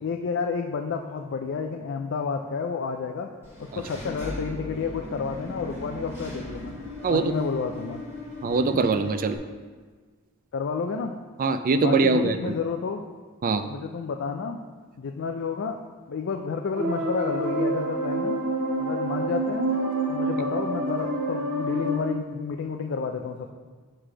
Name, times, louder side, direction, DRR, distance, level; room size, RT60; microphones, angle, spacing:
voice 1, 0.0-3.3 3.6-6.8 7.1-8.0 10.5-11.1 11.7-13.0 13.7-14.6 15.0-15.8 16.1-18.4 18.8-19.7 20.1-23.5, left 5 dB, 55° left, 3 dB, 0.4 m, -30 dB
Engine / Mechanisms, 3.4-9.4, left 1 dB, 10° right, 1.4 m, -38 dB
voice 2, 7.0-7.3 8.4-9.4 11.4-12.5 13.4-13.6, right 4 dB, 40° right, 10 dB, 0.4 m, -23 dB
sound 1, 16.7-22.0, right 1 dB, 80° right, 1.1 m, -27 dB
7.6 x 3.3 x 6.0 m, 1.5 s
head